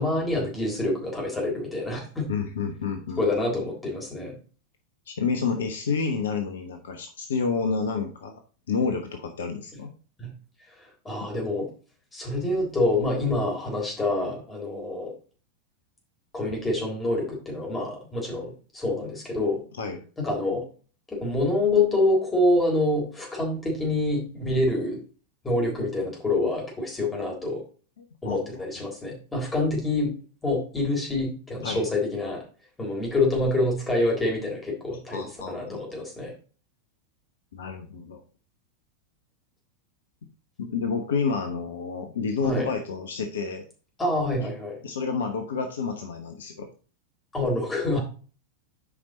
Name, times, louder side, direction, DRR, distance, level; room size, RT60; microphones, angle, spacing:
voice 1, 0.0-2.3 3.2-4.4 10.2-10.3 10.8-11.7 12.1-15.1 16.3-19.6 20.2-20.7 21.1-25.0 25.4-27.6 28.2-30.1 30.4-32.4 32.8-36.3 42.4-42.7 44.0-44.8 47.3-48.0, left 2 dB, 15° left, -1 dB, 3.7 m, -26 dB
voice 2, 2.3-3.2 5.1-8.4 8.7-9.9 19.8-20.0 28.0-28.6 31.6-31.9 35.1-35.8 37.5-38.2 40.6-43.7 44.4-44.5 44.8-46.7, left 5 dB, 65° left, 5 dB, 1.1 m, -29 dB
8.5 x 5.3 x 3.9 m, 0.37 s
figure-of-eight pair, 90°, 0 cm